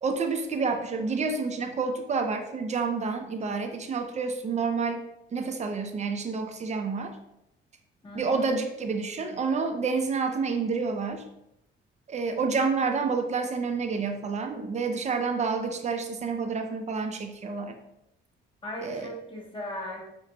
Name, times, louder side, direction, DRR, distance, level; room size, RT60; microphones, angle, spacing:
voice 1, 0.0-5.0 5.3-7.2 8.1-11.2 12.1-17.7 18.8-19.1, right 4 dB, 35° right, 5 dB, 0.5 m, -29 dB
voice 2, 8.0-8.5 18.6-20.0, left 1 dB, 25° left, -2 dB, 1.2 m, -37 dB
4.8 x 3.0 x 2.2 m, 0.84 s
cardioid pair, 90°, 20 cm